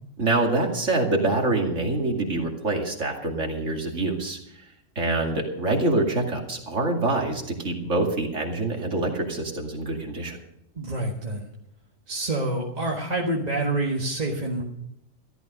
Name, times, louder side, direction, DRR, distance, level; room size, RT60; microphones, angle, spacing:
voice 1, 0.2-4.4 5.0-10.4, right 2 dB, 80° right, 1 dB, 2.7 m, -25 dB
voice 2, 10.8-11.5 12.1-14.6, right 2 dB, 35° right, -2 dB, 1.8 m, -27 dB
14.5 x 12.5 x 5.2 m, 0.80 s
omnidirectional pair, 1.3 m